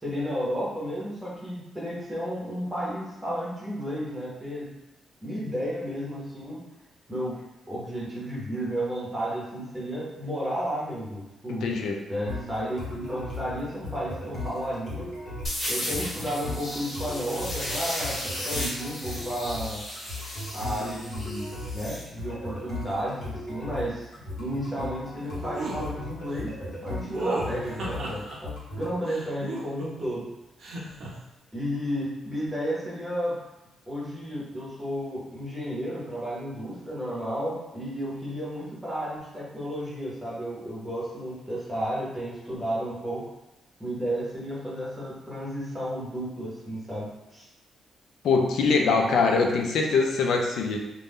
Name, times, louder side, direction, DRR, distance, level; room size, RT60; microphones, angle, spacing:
voice 1, 0.0-4.7 5.2-6.6 7.1-7.4 7.7-11.7 12.1-15.1 15.7-19.8 20.5-30.3 31.5-33.4 33.9-43.2 43.8-47.4, equal, 10° right, -7 dB, 1.0 m, -32 dB
voice 2, 11.6-12.0 48.2-50.8, left 4 dB, 75° left, 2 dB, 0.4 m, -23 dB
sound 1, 12.3-28.9, left 1 dB, 60° left, 1.0 m, -37 dB
sound 2, 15.4-22.0, equal, 35° left, 1.3 m, -35 dB
sound 3, 25.5-25.8 27.1-28.4 29.1-30.1 30.6-31.1, right 3 dB, 60° right, 0.6 m, -33 dB
2.5 x 2.2 x 3.4 m, 0.97 s
wide cardioid pair, 155°, 0 cm